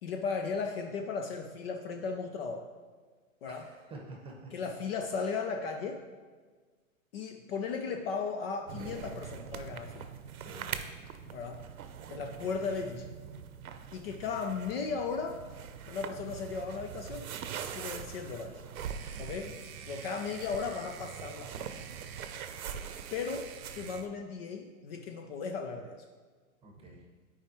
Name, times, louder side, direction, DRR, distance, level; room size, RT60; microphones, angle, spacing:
voice 1, 0.0-2.7 3.4-3.7 4.5-6.1 7.1-10.1 11.3-11.7 12.1-13.1 13.9-15.4 15.9-17.3 17.7-18.6 19.2-21.7 23.1-26.0, left 5 dB, 45° left, 5 dB, 0.5 m, -36 dB
voice 2, 3.5-4.5 10.4-10.7 19.1-19.6 26.6-27.0, right 2 dB, 15° right, 0 dB, 1.1 m, -48 dB
sound 1, 8.7-24.1, right 7 dB, 85° right, 0.7 m, -43 dB
sound 2, 18.7-24.0, right 9 dB, 45° right, 0.6 m, -49 dB
9.2 x 4.8 x 3.0 m, 1.5 s
hypercardioid pair, 130°, 42 cm